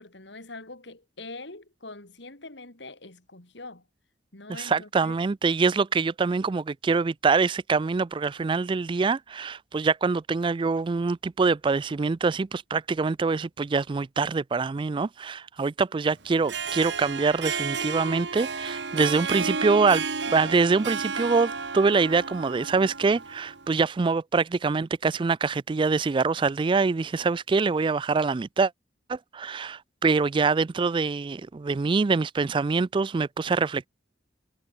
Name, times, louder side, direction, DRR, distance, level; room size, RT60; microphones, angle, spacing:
voice 1, 0.0-3.9 4.3-5.2, left 2 dB, 65° left, 3.7 m, -43 dB
voice 2, 4.5-28.7 29.1-33.9, right 4 dB, 25° right, 0.3 m, -25 dB
Harp, 16.3-23.7, right 5 dB, 65° right, 1.8 m, -32 dB
head